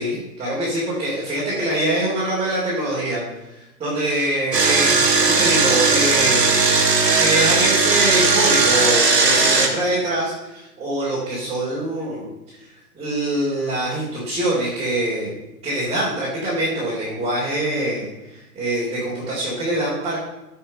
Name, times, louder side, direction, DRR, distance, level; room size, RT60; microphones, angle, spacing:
voice 1, 0.0-6.8 7.2-20.2, right 1 dB, 10° right, -7 dB, 3.4 m, -24 dB
Engine, 4.5-9.7, right 4 dB, 80° right, 2.2 m, -17 dB
15.0 x 5.6 x 5.4 m, 0.99 s
figure-of-eight pair, 115°, 48 cm